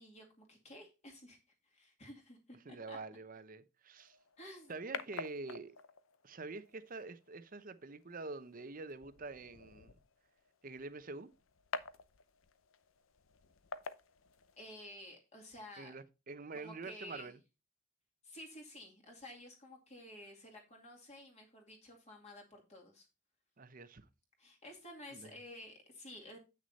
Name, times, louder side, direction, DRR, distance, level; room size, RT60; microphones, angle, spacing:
voice 1, 0.0-1.4 1.6-3.0 4.4-4.7 14.6-15.9 16.5-17.3 18.2-23.1 24.4-26.4, left 1 dB, 35° left, 2.5 m, -52 dB
voice 2, 2.6-4.2 4.7-5.8 6.2-10.0 10.6-11.3 15.8-17.4 23.6-24.0 25.1-25.3, right 3 dB, 45° right, 0.7 m, -46 dB
sound 1, 4.0-15.0, left 5 dB, 85° left, 0.7 m, -50 dB
8.2 x 6.3 x 4.1 m
head